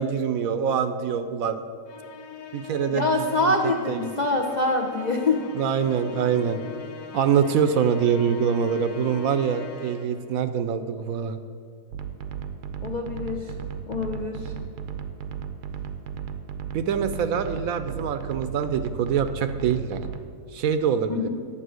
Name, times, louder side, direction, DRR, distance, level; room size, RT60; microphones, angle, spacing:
voice 1, 0.0-1.6 2.5-4.1 5.5-6.6 7.1-11.4 16.7-20.0 20.5-21.3, right 7 dB, 70° right, 10 dB, 0.9 m, -25 dB
Musical instrument, 1.9-10.4, left 8 dB, 85° left, 1.3 m, -41 dB
voice 2, 2.9-5.4 12.8-13.5 13.9-14.5 21.1-21.3, left 2 dB, 50° left, 1 dB, 0.5 m, -25 dB
sound 1, 11.9-20.2, right 8 dB, 90° right, 1.3 m, -35 dB
10.0 x 7.5 x 6.3 m, 2.4 s
omnidirectional pair, 1.7 m